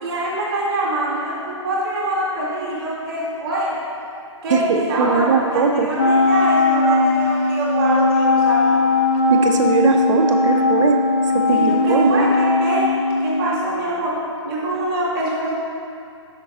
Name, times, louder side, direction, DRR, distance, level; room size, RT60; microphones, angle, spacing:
voice 1, 0.0-3.7 4.4-8.8 11.5-12.9 13.2-14.1 14.4-15.5, right 1 dB, 25° right, -8 dB, 0.9 m, -24 dB
voice 2, 4.5-5.9 9.3-11.0 11.3-12.3, right 5 dB, 70° right, 3 dB, 0.5 m, -20 dB
Wind instrument woodwind instrument, 6.0-13.6, left 3 dB, 30° left, 0.3 m, -18 dB
5.1 x 4.9 x 3.9 m, 2.5 s
hypercardioid pair, 160°, 16 cm